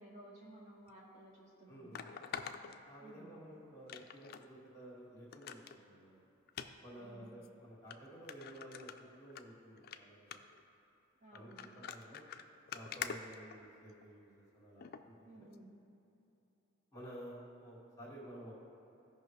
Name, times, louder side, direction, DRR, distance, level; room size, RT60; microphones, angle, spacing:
voice 1, 0.0-2.0 3.0-3.4 7.0-7.3 11.2-11.6 15.2-15.7, right 1 dB, 35° right, -5 dB, 1.4 m, -56 dB
sound 1, 0.9-1.0 1.9-3.4 3.9-4.5 4.8-4.9 5.3-5.8 6.5-6.7 7.4-7.5 7.9-8.0 8.3-9.4 9.8-10.0 10.3-10.6 11.3-14.0 14.8-15.0 15.5-15.6, left 7 dB, 45° left, 0.4 m, -46 dB
voice 2, 1.7-2.1 2.8-6.2 6.8-10.4 11.3-12.2 12.7-15.5 16.9-18.6, equal, 15° left, -4 dB, 2.0 m, -53 dB
15.5 x 5.4 x 3.3 m, 2.9 s
head